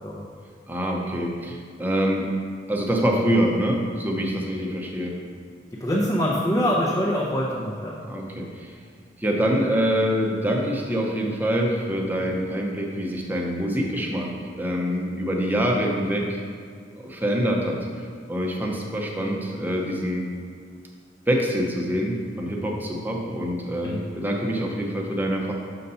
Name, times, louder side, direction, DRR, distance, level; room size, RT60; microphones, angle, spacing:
voice 1, 0.7-2.3 2.7-5.2 8.1-8.8 9.2-16.4 17.0-20.3 21.3-25.5, equal, 10° right, -1 dB, 0.8 m, -25 dB
voice 2, 5.8-7.9 23.8-24.1, equal, 20° left, -5 dB, 0.7 m, -24 dB
6.6 x 4.0 x 5.6 m, 2.1 s
head